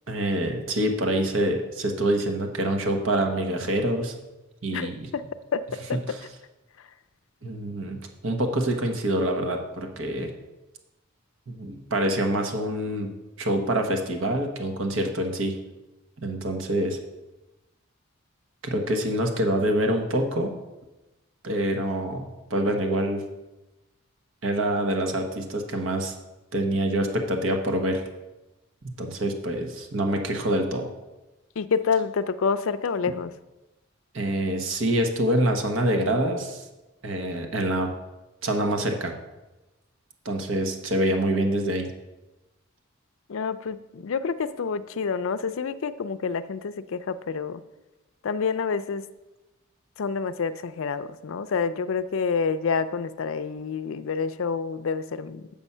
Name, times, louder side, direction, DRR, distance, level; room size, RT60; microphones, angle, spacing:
voice 1, 0.1-4.2 4.6-5.1 6.1-6.2 7.4-8.0 8.2-10.3 11.5-13.1 13.4-15.6 16.2-17.0 18.6-20.5 21.4-23.3 24.4-26.1 26.5-28.0 28.8-30.9 34.1-36.6 37.0-37.9 38.4-39.1 40.2-41.9, right 1 dB, 65° right, 4 dB, 1.1 m, -26 dB
voice 2, 4.7-5.2 5.5-5.6 31.6-33.3 43.3-47.6 48.2-49.0 50.0-55.4, left 5 dB, 70° left, 12 dB, 0.4 m, -28 dB
7.1 x 7.0 x 5.5 m, 1.1 s
head